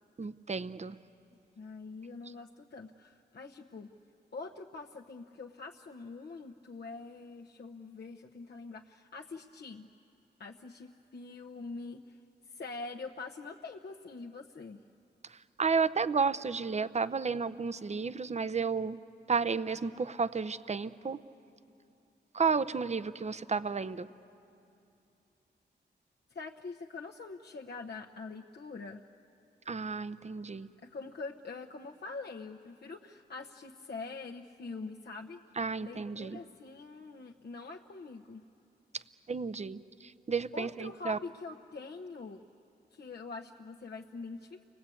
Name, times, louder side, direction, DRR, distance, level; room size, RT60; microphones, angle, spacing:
voice 1, 0.2-1.0 15.6-19.0 19.3-21.2 22.3-24.1 29.7-30.7 35.6-36.4 39.3-41.2, right 5 dB, 40° right, 14 dB, 0.7 m, -32 dB
voice 2, 1.6-3.9 4.3-9.9 10.4-12.2 12.5-14.8 26.3-29.1 30.8-35.4 35.8-38.4 40.5-42.4 42.9-44.6, left 4 dB, 65° left, 1 dB, 1.0 m, -44 dB
29.5 x 21.5 x 8.5 m, 2.7 s
cardioid pair, 65°, 18 cm